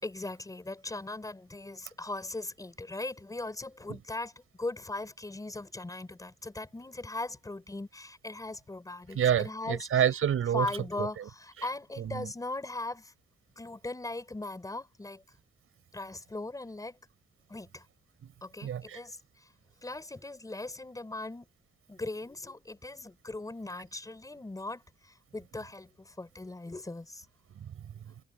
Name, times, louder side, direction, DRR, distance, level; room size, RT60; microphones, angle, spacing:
voice 1, 0.0-4.3 4.6-9.9 10.5-13.1 13.6-15.2 15.9-17.0 17.5-17.9 18.4-19.5 19.8-21.5 21.9-27.3, left 2 dB, 15° left, 5.4 m, -39 dB
voice 2, 9.1-10.7 11.0-11.3 12.0-12.3 18.2-18.3 18.6-19.0 27.5-28.1, right 9 dB, 85° right, 6.3 m, -29 dB
wide cardioid pair, 160°, 21 cm